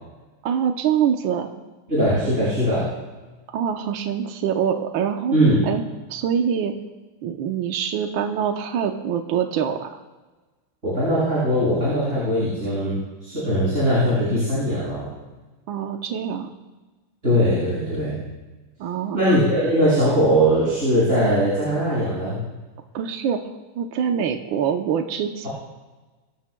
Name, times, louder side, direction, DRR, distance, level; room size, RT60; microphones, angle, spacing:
voice 1, 0.4-1.5 3.5-5.3 5.6-5.8 6.1-6.7 7.2-9.9 15.7-16.5 18.8-19.2 22.9-23.4 23.8-25.5, right 8 dB, 75° right, 4 dB, 1.6 m, -24 dB
voice 2, 1.9-2.9 5.3-5.6 10.8-15.1 17.2-18.2 19.1-22.4, equal, 35° right, -10 dB, 6.3 m, -20 dB
24.5 x 15.0 x 2.3 m, 1.2 s
omnidirectional pair, 2.2 m